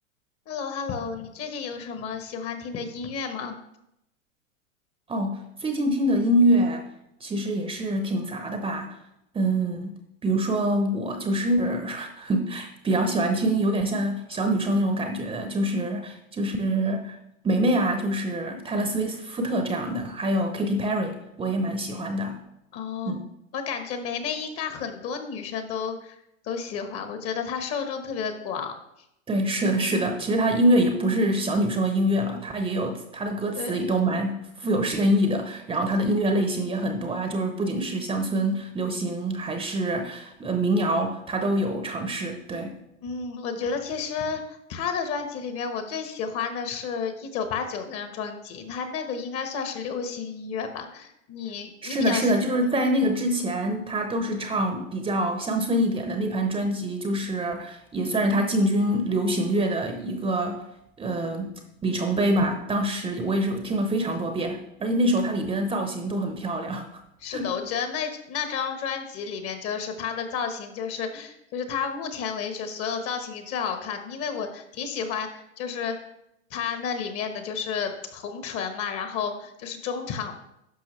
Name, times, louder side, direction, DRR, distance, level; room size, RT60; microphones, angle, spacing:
voice 1, 0.5-3.6 22.7-23.2 23.5-28.7 33.6-33.8 43.0-52.3 52.6-52.9 67.2-76.0 76.5-80.3, left 6 dB, 35° left, 7 dB, 1.2 m, -31 dB
voice 2, 5.1-6.8 7.2-9.0 9.3-10.0 10.2-17.2 17.4-22.4 23.1-23.2 29.3-42.7 51.8-60.6 61.0-66.9 67.3-67.5, right 1 dB, 15° right, 5 dB, 0.7 m, -25 dB
10.5 x 6.0 x 3.2 m, 0.82 s
hypercardioid pair, 110°, 41 cm